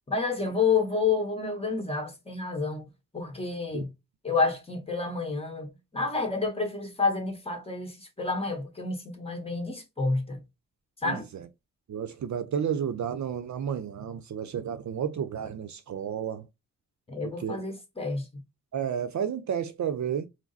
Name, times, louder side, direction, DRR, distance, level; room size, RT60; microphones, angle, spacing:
voice 1, 0.1-2.9 3.1-3.9 4.2-10.4 11.0-11.3 17.1-18.3, left 4 dB, 15° left, 1.4 m, -29 dB
voice 2, 11.0-11.4 11.9-16.4 17.2-17.6 18.7-20.3, right 8 dB, 60° right, 0.6 m, -31 dB
4.8 x 2.1 x 4.0 m
cardioid pair, 95°, 33 cm